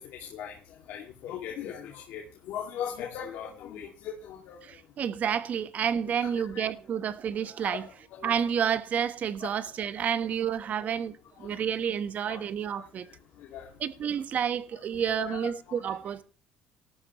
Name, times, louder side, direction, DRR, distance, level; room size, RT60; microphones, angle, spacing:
voice 1, 0.1-0.6 0.9-4.6 6.2-6.7 7.4-7.8 8.1-8.4 9.4-9.5 12.3-12.4 13.5-13.7 15.1-15.8, left 9 dB, 75° left, 2.4 m, -39 dB
voice 2, 4.6-7.9 8.2-13.1 13.8-16.2, right 8 dB, 50° right, 1.2 m, -30 dB
18.0 x 12.5 x 3.1 m
cardioid pair, 105°, 3 cm